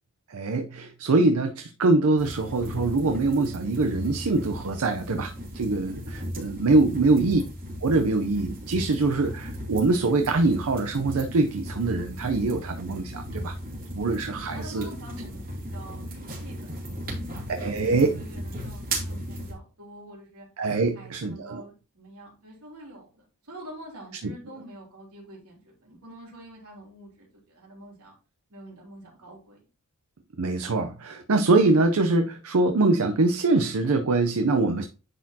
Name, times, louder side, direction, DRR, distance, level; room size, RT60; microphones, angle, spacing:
voice 1, 0.3-7.4 7.8-13.5 14.0-14.9 17.5-18.1 20.6-21.6 30.4-34.8, right 3 dB, 70° right, 0.6 m, -23 dB
sound 1, 2.2-19.5, equal, 40° right, 2.6 m, -36 dB
voice 2, 6.8-7.4 14.4-20.5 20.9-28.1 28.5-29.7, right 1 dB, 85° right, 3.4 m, -46 dB
9.9 x 4.3 x 2.8 m
head